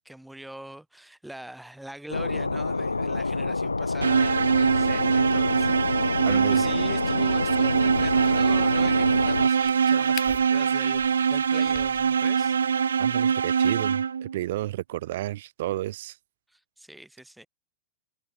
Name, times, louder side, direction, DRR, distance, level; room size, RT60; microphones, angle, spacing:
voice 1, 0.0-12.6 16.5-17.5, right 1 dB, 5° right, 7.5 m, -43 dB
sound 1, 2.1-9.5, left 3 dB, 80° left, 2.0 m, -28 dB
sound 2, 4.0-14.4, right 6 dB, 70° right, 0.7 m, -23 dB
voice 2, 6.3-6.6 13.0-16.2, right 15 dB, 55° right, 2.7 m, -31 dB
Crack, 7.7-12.7, left 31 dB, 45° left, 3.2 m, -46 dB
figure-of-eight pair, 90°, 0 cm